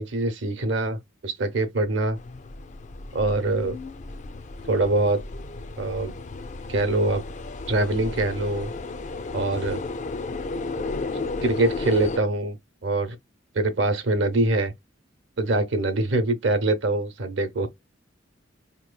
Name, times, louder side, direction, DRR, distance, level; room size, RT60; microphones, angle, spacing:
voice 1, 0.0-2.2 3.1-3.8 4.7-5.2 5.8-6.1 6.7-7.2 7.7-8.7 9.3-9.8 11.4-12.6 12.8-13.2 13.5-14.7 15.4-17.7, right 2 dB, 70° right, 0.8 m, -24 dB
sound 1, 2.2-12.2, left 3 dB, 35° left, 0.4 m, -34 dB
4.9 x 2.9 x 2.2 m
head